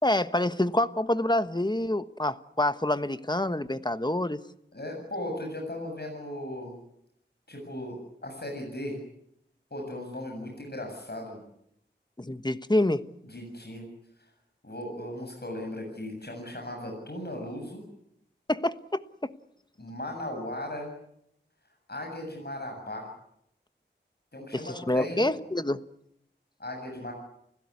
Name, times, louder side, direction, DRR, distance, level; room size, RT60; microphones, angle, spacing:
voice 1, 0.0-4.4 12.2-13.0 18.5-19.3 24.5-25.8, left 1 dB, 20° left, 1.2 m, -27 dB
voice 2, 4.7-6.7 7.5-9.0 9.7-11.4 13.2-13.9 14.6-17.8 19.8-20.9 21.9-23.1 24.3-25.2 26.6-27.1, left 1 dB, 55° left, 7.5 m, -37 dB
29.5 x 16.5 x 9.7 m
wide cardioid pair, 45°, 20 cm